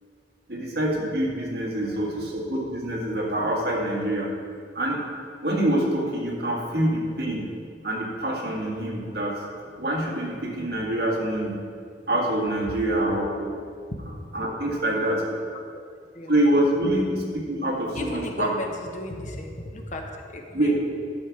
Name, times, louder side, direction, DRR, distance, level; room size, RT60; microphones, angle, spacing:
voice 1, 0.5-4.3 4.7-5.0 5.4-7.4 7.8-9.4 9.8-11.6 12.1-13.5 14.3-15.2 16.3-18.5 20.5-20.8, right 1 dB, 60° right, -2 dB, 1.9 m, -25 dB
voice 2, 1.7-2.3 6.7-7.2 12.6-12.7 15.3-15.4 16.1-16.3 17.9-20.8, left 1 dB, 45° left, 2 dB, 1.0 m, -35 dB
10.5 x 7.2 x 4.8 m, 2.1 s
head